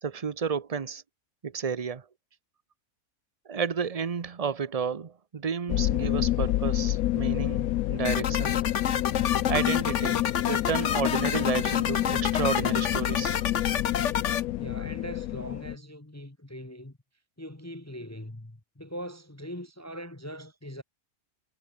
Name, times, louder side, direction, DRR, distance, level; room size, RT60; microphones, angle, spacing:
voice 1, 0.0-1.0 1.4-2.0 3.5-8.6 9.5-13.4, right 6 dB, 30° right, 0.7 m, -31 dB
sound 1, 5.7-15.8, left 15 dB, 80° left, 1.1 m, -28 dB
sound 2, 8.0-14.4, left 8 dB, 55° left, 1.3 m, -29 dB
voice 2, 14.6-17.0 17.4-20.8, equal, 10° left, 1.4 m, -41 dB
omnidirectional pair, 1.5 m